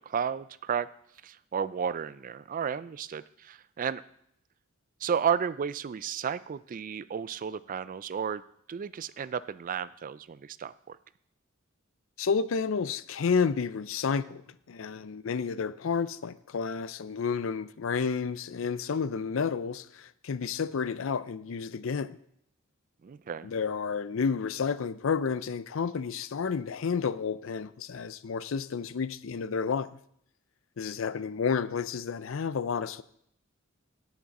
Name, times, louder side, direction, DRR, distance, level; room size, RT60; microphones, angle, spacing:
voice 1, 0.1-0.9 1.2-4.0 5.0-8.4 8.7-11.0 23.0-23.5, right 7 dB, 40° right, 0.3 m, -33 dB
voice 2, 12.2-22.2 23.4-29.9 30.8-33.0, left 5 dB, 70° left, 0.5 m, -31 dB
17.5 x 6.0 x 4.1 m
head